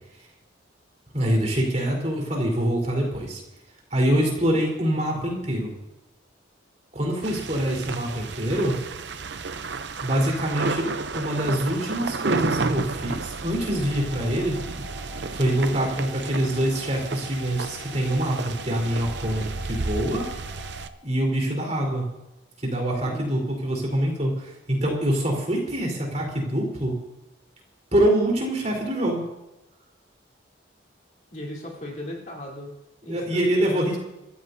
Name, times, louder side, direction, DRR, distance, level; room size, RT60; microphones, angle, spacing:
voice 1, 1.1-3.4 3.9-5.7 6.9-8.8 10.0-10.9 11.1-14.6 15.3-20.3 21.0-22.1 22.6-26.9 27.9-29.3 33.1-34.0, right 1 dB, 35° right, -1 dB, 4.1 m, -25 dB
sound 1, 7.2-20.9, right 4 dB, 65° right, 0.7 m, -32 dB
sound 2, 13.5-20.8, left 2 dB, 75° left, 4.2 m, -45 dB
voice 2, 23.0-23.4 31.3-32.7 33.0-34.0, left 1 dB, 40° left, -3 dB, 3.6 m, -37 dB
25.5 x 14.0 x 2.8 m, 0.94 s
head